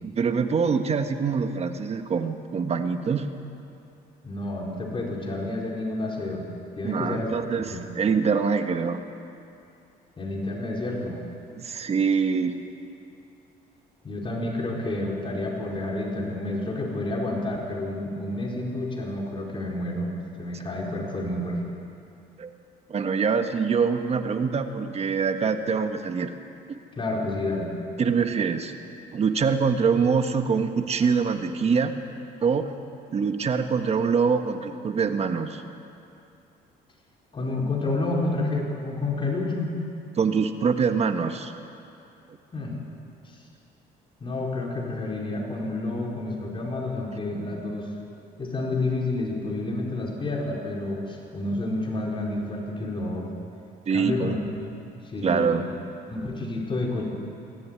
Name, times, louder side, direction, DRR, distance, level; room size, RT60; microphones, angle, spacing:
voice 1, 0.0-3.3 6.8-9.0 11.6-12.6 22.4-22.5 22.9-26.3 26.7-26.8 28.0-28.7 29.1-31.9 32.4-32.7 33.1-35.6 40.2-41.5 53.9-54.4 55.2-55.7, right 5 dB, 40° right, 7 dB, 1.4 m, -24 dB
voice 2, 4.2-6.4 6.8-7.4 7.7-7.8 10.2-11.2 14.0-20.1 20.4-21.6 26.9-27.7 37.3-39.7 42.5-42.7 43.2-43.4 44.2-47.9 48.4-53.3 53.9-54.7 55.0-55.7 56.1-57.1, left 2 dB, 30° left, -1 dB, 4.8 m, -29 dB
22.0 x 13.5 x 9.8 m, 2.6 s
cardioid pair, 110°, 17 cm